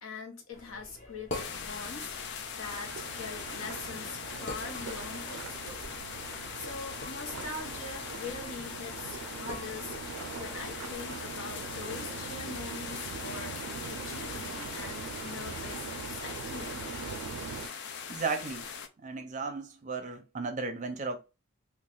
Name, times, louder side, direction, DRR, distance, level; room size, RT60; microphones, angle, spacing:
voice 1, 0.0-2.1 2.5-5.8 6.5-10.0 10.4-16.9, left 3 dB, 75° left, 0.9 m, -43 dB
sound 1, 0.5-11.0, left 1 dB, 35° left, 0.8 m, -47 dB
sound 2, 1.3-18.9, left 6 dB, 50° left, 0.4 m, -41 dB
sound 3, 2.6-17.7, right 6 dB, 85° right, 0.4 m, -42 dB
voice 2, 18.1-18.7 19.0-21.2, right 4 dB, 35° right, 0.5 m, -35 dB
3.0 x 2.4 x 3.7 m
head